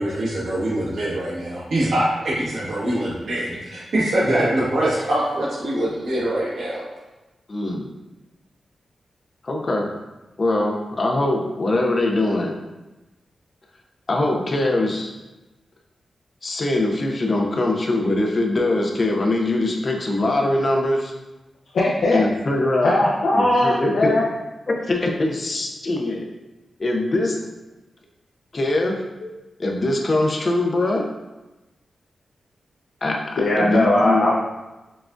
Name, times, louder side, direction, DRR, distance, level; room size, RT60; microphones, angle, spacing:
voice 1, 0.0-6.8, right 1 dB, 90° right, -7 dB, 1.3 m, -23 dB
voice 2, 7.5-7.9 9.4-9.9 10.4-12.6 14.1-15.1 16.4-21.1 22.1-22.9 23.3-24.2 24.7-26.3 26.8-27.4 28.5-29.0 29.6-31.1 33.0-34.2, left 2 dB, 35° left, 1 dB, 0.5 m, -22 dB
voice 3, 21.7-22.2 22.8-24.2 33.4-34.3, left 1 dB, 85° left, -6 dB, 0.6 m, -19 dB
5.8 x 2.4 x 2.5 m, 1.1 s
wide cardioid pair, 160°, 0 cm